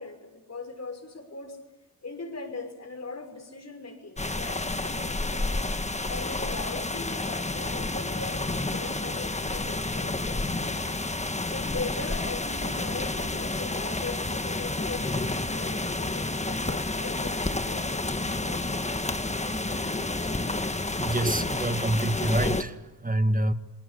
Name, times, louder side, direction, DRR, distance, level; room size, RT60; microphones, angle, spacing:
voice 1, 0.0-1.6 2.0-5.7 6.1-10.8 11.5-19.0, left 3 dB, 40° left, 6 dB, 5.9 m, -40 dB
sound 1, 4.2-22.6, left 2 dB, 15° left, 1.7 m, -30 dB
voice 2, 21.0-23.5, right 1 dB, 20° right, 10 dB, 2.0 m, -27 dB
28.0 x 20.0 x 8.5 m, 1.1 s
cardioid pair, 55°, 39 cm